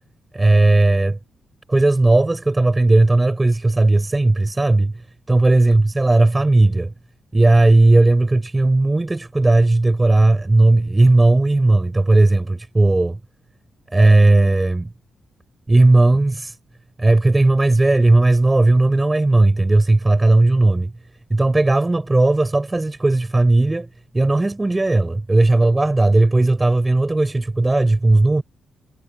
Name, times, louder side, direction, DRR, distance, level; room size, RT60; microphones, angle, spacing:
voice 1, 0.3-1.2 1.7-5.0 5.3-6.9 7.3-13.2 13.9-14.9 15.7-16.6 17.0-20.9 21.3-23.9 24.1-28.4, right 2 dB, 10° right, 5.4 m, -16 dB
wide cardioid pair, 175°, 0 cm